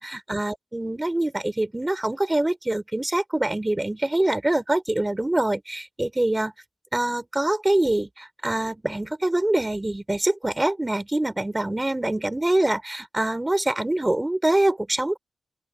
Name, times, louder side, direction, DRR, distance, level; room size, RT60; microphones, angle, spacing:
voice 1, 0.0-6.5 6.9-15.2, right 1 dB, 15° right, 4.2 m, -24 dB
open air
cardioid pair, 75°, 0 cm